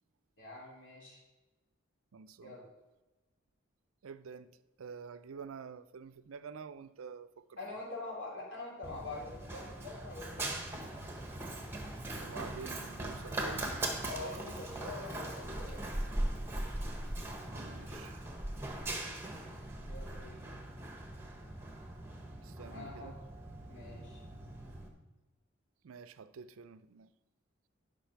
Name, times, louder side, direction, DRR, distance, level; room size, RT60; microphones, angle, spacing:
voice 1, 0.4-1.2 2.4-2.6 7.6-10.9 14.0-15.8 19.9-20.4 22.7-23.1 23.7-24.2, left 2 dB, 60° left, 3.3 m, -45 dB
voice 2, 2.1-2.6 4.0-7.6 12.2-13.7 17.4-18.2 22.4-23.2 25.8-27.1, right 6 dB, 80° right, 0.4 m, -48 dB
Run, 8.8-24.9, right 1 dB, 10° right, 1.0 m, -40 dB
10.5 x 5.3 x 5.7 m
head